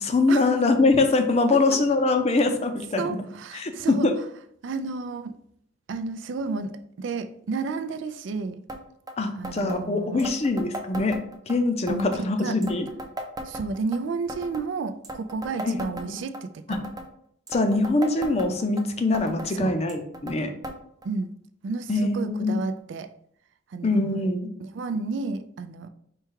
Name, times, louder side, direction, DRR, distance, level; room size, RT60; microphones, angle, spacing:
voice 1, 0.0-3.2 3.5-4.1 9.2-11.2 11.5-12.9 15.7-15.8 16.0-16.2 16.7-16.8 17.5-20.5 21.9-22.6 23.8-24.5, left 3 dB, 35° left, 6 dB, 0.5 m, -23 dB
voice 2, 3.0-4.1 4.6-5.4 5.9-8.6 9.4-10.3 11.9-12.6 13.4-16.6 19.5-19.8 21.0-21.3 21.6-23.1 23.7-24.3 24.6-25.9, right 4 dB, 75° right, 8 dB, 0.4 m, -31 dB
sound 1, 8.7-8.8 9.1-9.2 9.4-9.8 10.2-11.6 11.9-12.2 12.6-14.0 14.3-14.7 15.0-16.4 16.7-17.1 17.5-18.8 19.1-19.5 19.9-20.4 20.6-20.8 21.0-21.1 21.9-22.0 22.8-22.9, right 1 dB, 20° right, 0.5 m, -37 dB
4.7 x 2.3 x 4.6 m, 0.68 s
head